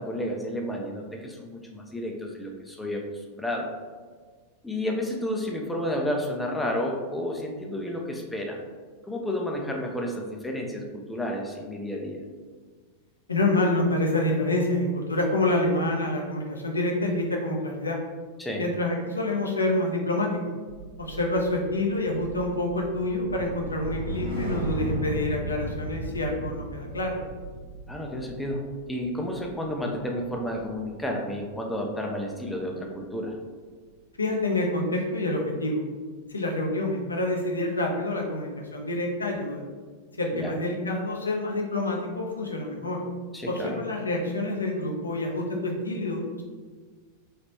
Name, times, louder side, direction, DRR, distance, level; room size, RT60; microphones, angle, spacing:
voice 1, 0.0-3.0 3.3-3.7 4.6-8.6 9.1-12.2 18.4-18.6 27.9-28.6 28.9-33.3 40.4-40.5 43.3-43.8, left 1 dB, 5° left, 0 dB, 0.4 m, -31 dB
voice 2, 13.3-18.0 18.6-20.4 21.0-27.2 34.2-35.8 36.3-39.6 40.2-43.0 43.5-46.4, left 1 dB, 75° left, 0 dB, 0.5 m, -27 dB
sound 1, 20.7-31.1 31.4-31.7, right 2 dB, 70° right, 1.1 m, -37 dB
3.3 x 2.9 x 2.8 m, 1.5 s
figure-of-eight pair, 90°, 0 cm